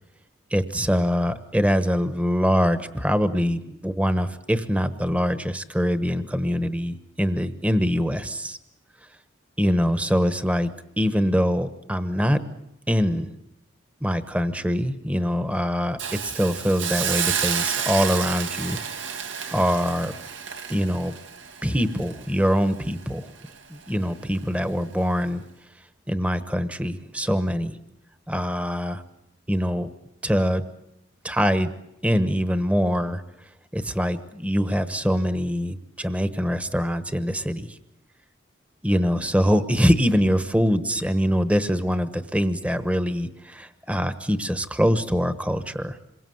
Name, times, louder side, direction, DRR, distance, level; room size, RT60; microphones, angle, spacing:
voice 1, 0.5-8.6 9.6-10.7 11.0-12.4 12.9-13.3 14.0-18.8 19.5-20.1 20.7-21.1 21.6-23.3 23.7-25.5 26.1-27.8 28.3-29.0 29.5-29.9 30.2-30.6 31.2-31.7 32.0-33.2 33.7-37.8 38.8-46.0, equal, 5° right, 10 dB, 1.1 m, -23 dB
Hiss, 16.0-23.0 23.4-23.6, right 7 dB, 80° right, 1.9 m, -30 dB
27.5 x 23.0 x 7.8 m, 0.82 s
head